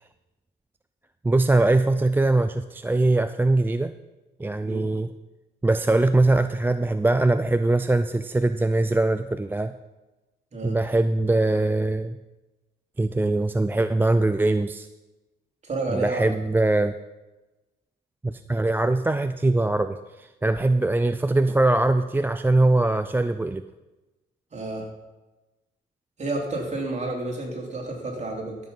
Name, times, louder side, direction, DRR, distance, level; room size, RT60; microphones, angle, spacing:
voice 1, 1.2-3.9 4.4-5.1 5.6-9.7 10.6-12.2 13.0-14.9 15.9-17.0 18.2-23.6, right 2 dB, 10° right, 11 dB, 0.3 m, -22 dB
voice 2, 15.6-16.3 24.5-24.9 26.2-28.6, right 2 dB, 35° right, -1 dB, 3.3 m, -30 dB
12.5 x 7.4 x 5.4 m, 1.1 s
cardioid pair, 90°, 20 cm